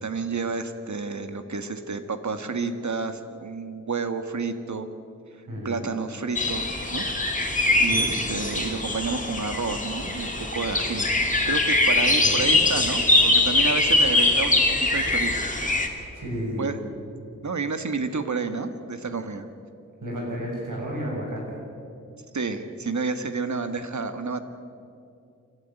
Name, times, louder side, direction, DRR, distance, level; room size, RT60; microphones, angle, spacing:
voice 1, 0.0-4.9 5.3-7.0 7.4-11.1 11.4-15.5 16.6-16.8 17.4-19.5 22.3-24.4, right 4 dB, 65° right, 9 dB, 1.6 m, -30 dB
voice 2, 5.5-5.9 7.9-8.1 12.2-12.5 16.1-16.7 20.0-21.6, equal, 90° right, -2 dB, 7.4 m, -32 dB
sound 1, 6.3-15.9, left 2 dB, 25° left, 2.7 m, -22 dB
28.0 x 12.5 x 9.0 m, 2.6 s
wide cardioid pair, 80°, 31 cm